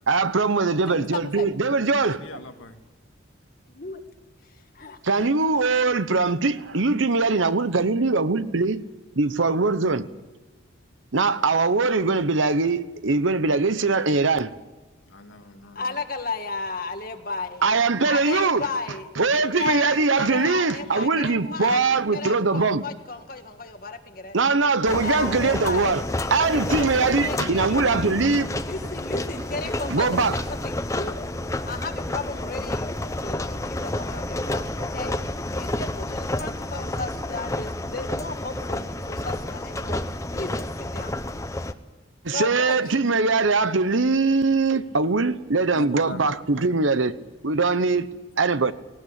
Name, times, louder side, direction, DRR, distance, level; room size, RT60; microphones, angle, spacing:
voice 1, 0.1-2.2 5.0-8.8 9.2-10.1 11.1-14.5 17.6-18.7 19.2-22.9 24.3-26.0 26.3-28.5 29.9-30.3 42.2-47.1 47.4-48.1 48.4-48.7, right 3 dB, 75° right, 1.0 m, -22 dB
voice 2, 0.7-1.5 3.7-4.0 4.4-5.3 15.7-17.6 18.0-24.3 25.0-26.1 26.5-31.2 31.6-35.2 35.5-41.3 42.3-43.0, left 3 dB, 45° left, 1.7 m, -34 dB
voice 3, 2.1-2.8 15.1-16.0 45.7-46.3, left 2 dB, 85° left, 2.2 m, -41 dB
sound 1, 24.8-41.7, left 1 dB, 15° left, 0.8 m, -30 dB
19.0 x 18.5 x 8.7 m
head